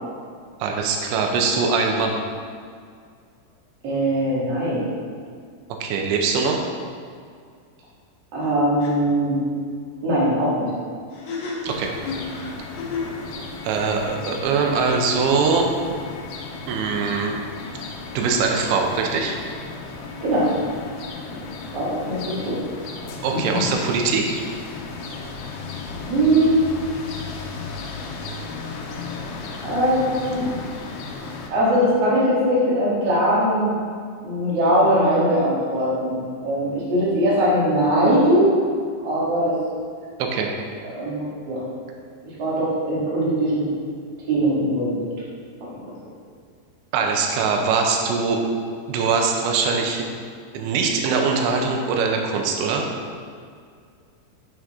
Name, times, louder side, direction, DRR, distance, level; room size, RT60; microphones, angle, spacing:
voice 1, 0.6-2.2 5.8-6.7 11.6-11.9 13.6-15.7 16.7-17.3 18.2-19.4 23.2-24.3 40.2-40.5 46.9-48.4 48.9-50.1 50.5-52.9, right 5 dB, 80° right, 2 dB, 2.9 m, -22 dB
voice 2, 3.8-4.8 8.3-9.4 10.0-10.7 20.2-20.5 21.3-21.4 21.7-22.6 25.1-25.2 26.1-26.6 29.6-30.5 31.5-33.8 34.2-38.5 39.0-39.6 40.8-41.6 42.4-43.7 44.3-45.1 45.6-45.9, right 1 dB, 50° right, -7 dB, 2.1 m, -21 dB
sound 1, 8.4-8.5 8.8-8.9 11.1-13.2, left 4 dB, 65° left, 2.7 m, -31 dB
sound 2, 11.7-31.5, left 4 dB, 80° left, 2.7 m, -35 dB
7.5 x 6.2 x 3.6 m, 2.1 s
omnidirectional pair, 5.4 m